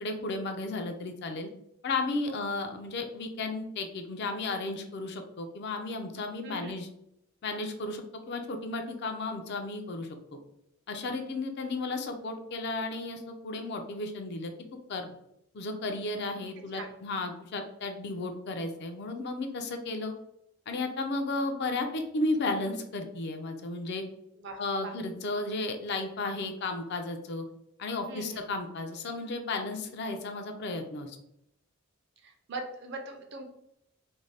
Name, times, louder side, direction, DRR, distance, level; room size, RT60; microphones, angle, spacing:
voice 1, 0.0-1.5 1.8-6.9 7.4-10.2 10.9-14.5 14.9-15.1 15.5-20.1 20.7-24.0 24.6-27.4 27.8-31.2, left 2 dB, 50° left, 5 dB, 0.4 m, -34 dB
voice 2, 24.4-24.9 28.1-28.6 32.2-33.4, right 2 dB, 55° right, 4 dB, 0.5 m, -41 dB
2.6 x 2.1 x 3.2 m, 0.78 s
head